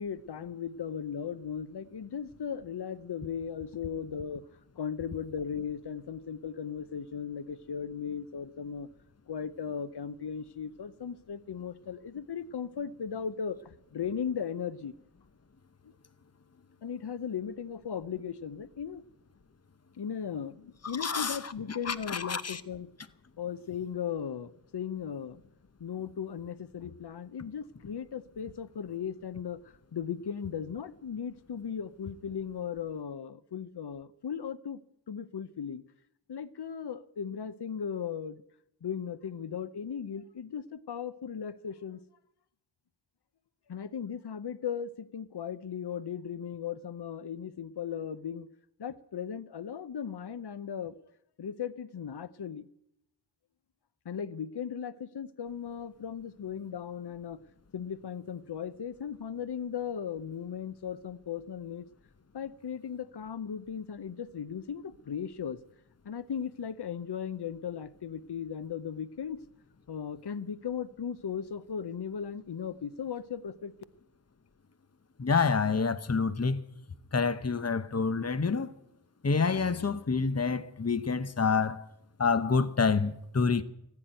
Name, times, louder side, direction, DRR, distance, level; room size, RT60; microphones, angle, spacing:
voice 1, 0.0-4.4 4.7-8.9 9.3-14.9 16.8-19.0 20.0-22.9 23.4-25.4 25.8-34.8 35.1-35.8 36.3-38.4 38.8-42.0 43.7-48.5 48.8-51.0 51.4-52.7 54.0-57.4 57.7-61.9 62.3-65.6 66.0-69.4 69.9-73.7, left 7 dB, 65° left, 0.7 m, -37 dB
voice 2, 21.0-22.6 75.2-76.6 77.1-78.7 79.2-81.9 82.2-83.6, left 5 dB, 35° left, 0.8 m, -28 dB
14.5 x 9.8 x 8.9 m
wide cardioid pair, 45°, 42 cm